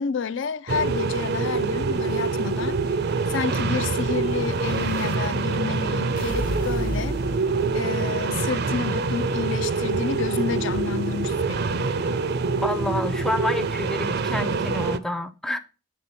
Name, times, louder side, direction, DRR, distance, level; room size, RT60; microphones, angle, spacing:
voice 1, 0.0-3.0 3.3-7.2 7.7-12.2, left 6 dB, 65° left, 0.5 m, -30 dB
sound 1, 0.7-15.0, right 4 dB, 55° right, 0.5 m, -25 dB
Explosion, 1.8-5.2 6.2-8.2, equal, 45° left, 0.8 m, -36 dB
voice 2, 12.6-15.6, left 1 dB, ahead, 0.5 m, -28 dB
8.3 x 3.7 x 5.7 m
head